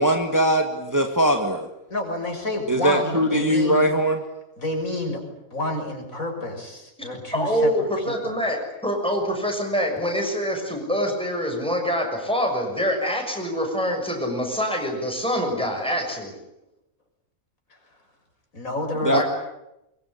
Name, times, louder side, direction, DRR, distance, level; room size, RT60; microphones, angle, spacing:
voice 1, 0.0-1.7 2.7-4.2 19.0-19.2, right 1 dB, 15° right, 4 dB, 2.0 m, -21 dB
voice 2, 1.9-3.9 4.6-5.2 5.5-8.3 18.5-19.2, left 1 dB, 70° left, 3 dB, 6.6 m, -29 dB
voice 3, 7.3-16.4 19.1-19.2, equal, 5° left, 2 dB, 6.5 m, -25 dB
23.5 x 23.5 x 10.0 m, 0.89 s
omnidirectional pair, 1.5 m